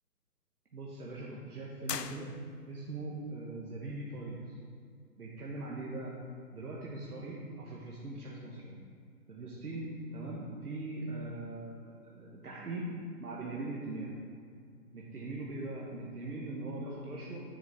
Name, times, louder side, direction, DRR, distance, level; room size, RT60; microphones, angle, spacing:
voice 1, 0.7-2.3 2.7-4.6 5.2-6.1 6.5-8.8 9.3-12.8 13.2-14.1 14.9-17.4, right 2 dB, 65° right, -4 dB, 1.4 m, -41 dB
sound 1, 1.9-2.9, left 8 dB, 80° left, 0.6 m, -40 dB
10.5 x 6.9 x 3.5 m, 2.2 s
hypercardioid pair, 165°, 48 cm